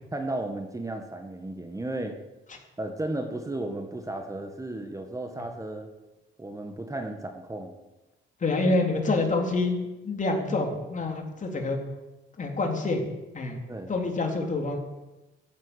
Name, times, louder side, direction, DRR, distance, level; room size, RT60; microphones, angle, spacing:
voice 1, 0.1-2.1 2.8-5.9 6.4-7.7 13.7-13.9, right 2 dB, 15° right, 5 dB, 1.7 m, -34 dB
voice 2, 8.4-9.8 10.0-11.8 12.4-13.1 13.3-13.6 13.9-14.8, left 2 dB, 40° left, 2 dB, 3.6 m, -26 dB
14.5 x 8.3 x 9.9 m, 1.0 s
cardioid pair, 90°, 20 cm